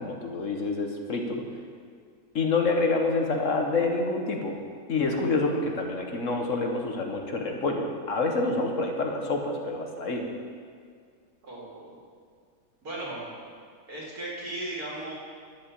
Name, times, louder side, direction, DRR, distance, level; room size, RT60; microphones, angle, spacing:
voice 1, 0.0-1.5 2.3-4.6 4.9-10.3, left 3 dB, 55° left, 2 dB, 1.5 m, -27 dB
voice 2, 11.4-12.0 12.8-13.3 13.9-15.1, right 1 dB, 70° right, -5 dB, 3.5 m, -36 dB
11.0 x 8.5 x 7.4 m, 2.1 s
omnidirectional pair, 1.6 m